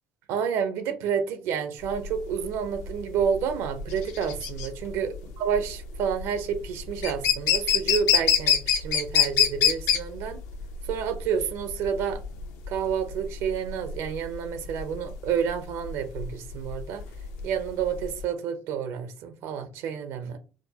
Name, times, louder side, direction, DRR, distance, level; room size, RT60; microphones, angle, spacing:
voice 1, 0.3-10.4 10.9-12.2 12.7-17.0 17.4-20.4, right 7 dB, 80° right, 0.7 m, -29 dB
sound 1, 1.9-18.2, left 8 dB, 80° left, 0.7 m, -26 dB
4.8 x 2.0 x 2.8 m
cardioid pair, 120°, 5 cm